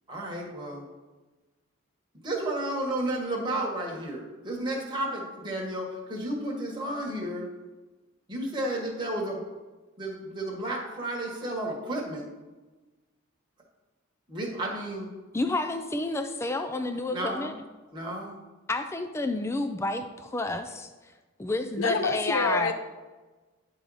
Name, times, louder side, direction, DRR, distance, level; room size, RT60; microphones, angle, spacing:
voice 1, 0.1-0.8 2.2-7.5 8.3-9.4 10.0-12.3 14.3-15.1 17.1-17.5 17.9-18.4, right 1 dB, 20° right, -2 dB, 1.4 m, -32 dB
voice 2, 15.3-17.5 18.7-20.9 21.4-22.7, left 2 dB, 10° left, 7 dB, 0.3 m, -30 dB
voice 3, 21.8-22.7, left 4 dB, 80° left, 8 dB, 0.6 m, -27 dB
10.0 x 3.9 x 4.8 m, 1.2 s
head